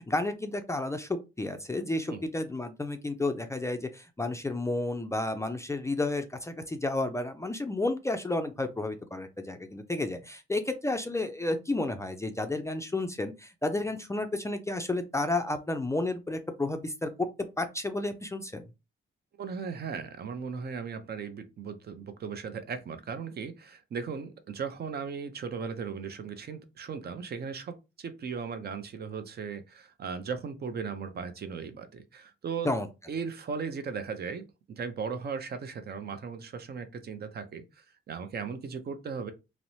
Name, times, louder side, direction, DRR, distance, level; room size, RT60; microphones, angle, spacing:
voice 1, 0.1-17.1 17.6-18.7 32.6-32.9, left 2 dB, 15° left, 0.3 m, -31 dB
voice 2, 19.4-32.7 33.1-39.3, right 5 dB, 50° right, 0.5 m, -37 dB
2.9 x 2.0 x 2.6 m
cardioid pair, 100°, 21 cm